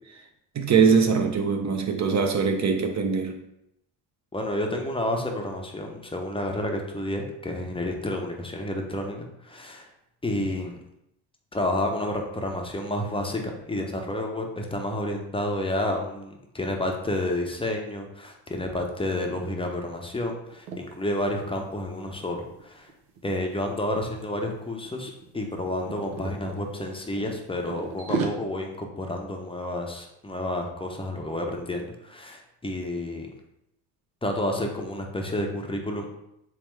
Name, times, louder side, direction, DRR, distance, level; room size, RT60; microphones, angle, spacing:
voice 1, 0.5-3.4, right 5 dB, 35° right, 0.6 m, -22 dB
voice 2, 4.3-9.9 10.2-10.8 11.5-22.9 23.2-33.3 34.2-36.1, left 1 dB, 10° left, 0.6 m, -30 dB
sound 1, 20.5-20.8 21.2-21.4 21.7-23.6 24.3-24.6 24.8-26.6 27.2-28.3, right 5 dB, 90° right, 0.7 m, -34 dB
3.4 x 3.4 x 3.1 m
supercardioid pair, 70°, 47 cm